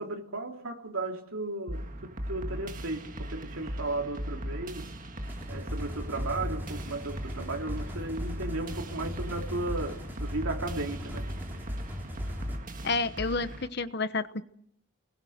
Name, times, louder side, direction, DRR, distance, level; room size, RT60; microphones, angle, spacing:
voice 1, 0.0-4.9 5.5-11.2, right 2 dB, 85° right, 3.1 m, -35 dB
sound 1, 1.7-13.7, equal, 40° right, 1.8 m, -38 dB
sound 2, 5.2-12.6, left 1 dB, 10° right, 3.3 m, -40 dB
voice 2, 12.8-14.4, left 3 dB, 50° left, 1.0 m, -30 dB
28.0 x 21.0 x 6.6 m
head